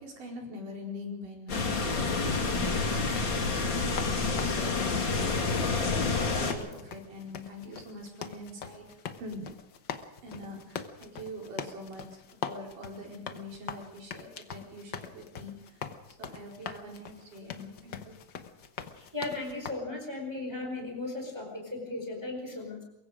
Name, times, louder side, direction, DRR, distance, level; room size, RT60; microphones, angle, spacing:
voice 1, 0.0-1.7 2.0-8.9 9.2-9.5 10.2-12.1 12.5-15.9 16.2-18.2, equal, 80° right, -1 dB, 6.2 m, -44 dB
sound 1, 1.5-19.7, left 7 dB, 60° left, 1.2 m, -43 dB
sound 2, 1.5-6.5, left 4 dB, 40° left, 2.8 m, -28 dB
voice 2, 18.9-22.8, left 2 dB, 5° right, 1 dB, 4.2 m, -37 dB
23.5 x 22.5 x 5.1 m, 0.87 s
omnidirectional pair, 3.7 m